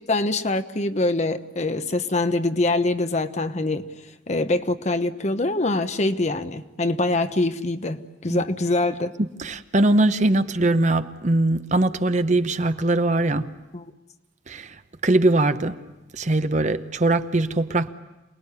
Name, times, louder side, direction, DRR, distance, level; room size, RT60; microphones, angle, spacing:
voice 1, 0.0-3.9 4.3-9.1 13.7-13.8, left 2 dB, 40° left, 1.0 m, -24 dB
voice 2, 9.2-13.5 14.5-14.8 15.0-15.8 16.1-17.9, right 2 dB, 40° right, 0.9 m, -21 dB
27.5 x 19.5 x 9.8 m
head